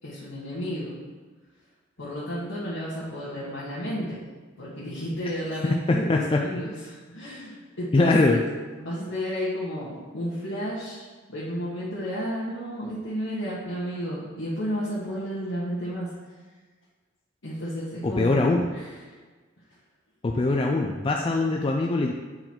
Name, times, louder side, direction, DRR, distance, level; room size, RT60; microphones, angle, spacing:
voice 1, 0.0-0.9 2.0-4.2 4.6-8.4 8.8-16.1 17.4-18.4 18.7-19.2, equal, 80° left, -9 dB, 1.5 m, -32 dB
voice 2, 5.9-6.5 7.9-8.4 18.0-18.7 20.2-22.1, left 2 dB, 25° left, 1 dB, 0.3 m, -22 dB
7.8 x 4.0 x 4.4 m, 1.4 s
head